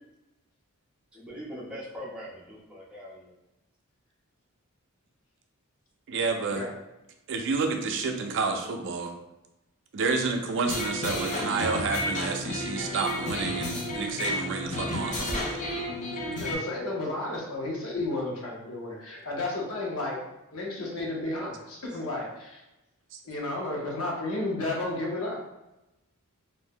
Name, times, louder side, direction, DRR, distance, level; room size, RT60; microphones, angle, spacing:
voice 1, 1.1-3.3, equal, 5° right, -7 dB, 0.7 m, -41 dB
voice 2, 6.1-6.7 7.3-9.1 9.9-15.5, right 4 dB, 60° right, 4 dB, 0.4 m, -29 dB
sound 1, 10.7-16.5, left 1 dB, 35° left, 0.5 m, -32 dB
voice 3, 16.4-20.2 20.5-22.6 23.3-25.4, left 2 dB, 75° left, -2 dB, 0.8 m, -32 dB
2.5 x 2.1 x 3.5 m, 0.95 s
head